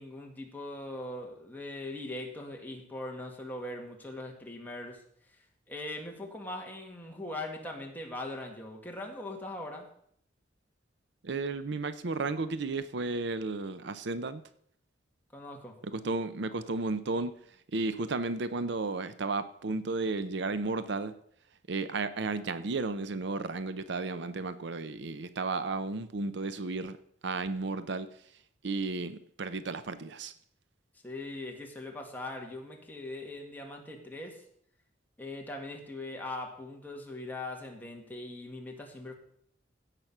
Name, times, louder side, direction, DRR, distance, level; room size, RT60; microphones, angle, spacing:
voice 1, 0.0-5.0 5.7-9.9 15.3-15.8 31.0-34.4 35.2-39.1, left 2 dB, 10° left, 0 dB, 1.9 m, -40 dB
voice 2, 11.2-14.4 15.8-17.3 17.7-21.1 21.7-27.0 27.2-28.1 28.6-30.3, right 3 dB, 65° right, 13 dB, 0.6 m, -33 dB
16.0 x 5.9 x 6.0 m, 0.66 s
head